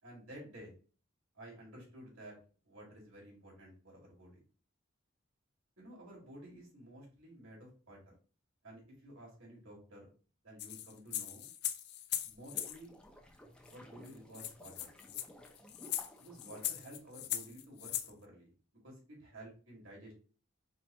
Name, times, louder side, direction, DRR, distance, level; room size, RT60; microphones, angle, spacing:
voice 1, 0.0-0.7 1.3-4.4 5.8-8.1 8.6-10.1 10.4-11.5 12.2-13.0 13.7-14.9 16.2-20.1, right 1 dB, 90° right, -3 dB, 2.3 m, -53 dB
sound 1, 10.6-12.8 13.7-13.8 14.1-14.2 14.3-18.1, left 12 dB, 55° left, 0.3 m, -39 dB
sound 2, 12.2-17.6, equal, 5° left, 0.6 m, -57 dB
4.3 x 2.3 x 4.2 m, 0.38 s
head